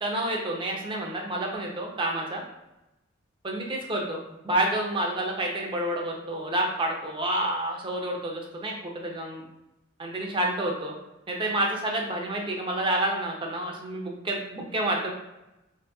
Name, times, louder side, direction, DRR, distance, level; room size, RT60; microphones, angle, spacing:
voice 1, 0.0-2.4 3.4-4.2 4.4-9.4 10.0-10.9 11.3-15.1, right 1 dB, 25° right, 0 dB, 0.5 m, -29 dB
2.6 x 2.2 x 2.2 m, 0.94 s
head